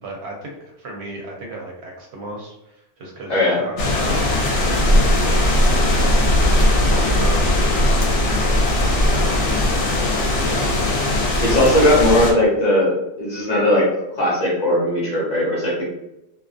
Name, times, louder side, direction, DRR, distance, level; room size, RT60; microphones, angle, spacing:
voice 1, 0.0-5.4 5.7-6.5 6.9-8.6 9.1-10.0 10.4-10.7, right 2 dB, 70° right, -1 dB, 0.8 m, -34 dB
voice 2, 3.3-3.6 11.4-15.8, left 1 dB, 40° left, -4 dB, 0.8 m, -18 dB
sound 1, 3.8-12.3, left 1 dB, 80° left, 0.9 m, -18 dB
2.2 x 2.2 x 2.4 m, 0.91 s
omnidirectional pair, 1.2 m